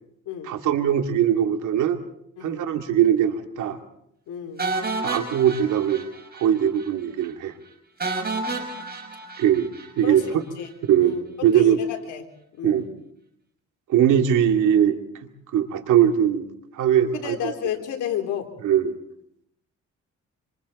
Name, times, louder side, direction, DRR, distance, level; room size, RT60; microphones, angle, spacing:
voice 1, 0.5-2.0 2.4-3.8 5.0-6.1 6.4-7.5 9.4-9.7 10.0-10.4 10.9-11.1 11.4-11.8 12.6-12.8 13.9-15.0 15.5-16.5 16.7-17.5 18.6-19.0, right 10 dB, 80° right, 5 dB, 2.3 m, -20 dB
voice 2, 4.3-4.6 10.0-10.7 11.0-11.2 11.5-12.2 12.6-12.9 17.1-18.5, left 9 dB, 85° left, 3 dB, 3.7 m, -31 dB
sound 1, 4.6-6.5 6.8-6.9 7.2-7.3 8.0-10.3, right 3 dB, 30° right, 5.6 m, -30 dB
27.0 x 26.0 x 4.2 m, 0.75 s
cardioid pair, 90°, 30 cm